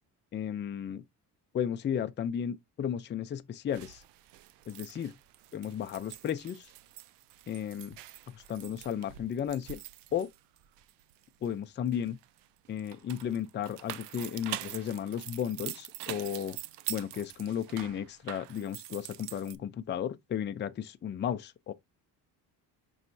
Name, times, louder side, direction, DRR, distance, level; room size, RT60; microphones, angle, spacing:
voice 1, 0.3-1.0 1.5-4.0 4.7-5.1 5.5-6.7 7.5-8.0 8.3-9.8 10.1-10.3 11.4-12.2 12.7-16.6 16.9-21.7, left 9 dB, 30° left, 0.4 m, -34 dB
sound 1, 3.7-11.5 11.9-19.6, right 14 dB, 90° right, 0.5 m, -44 dB
5.3 x 3.1 x 2.6 m
cardioid pair, 115°, 40 cm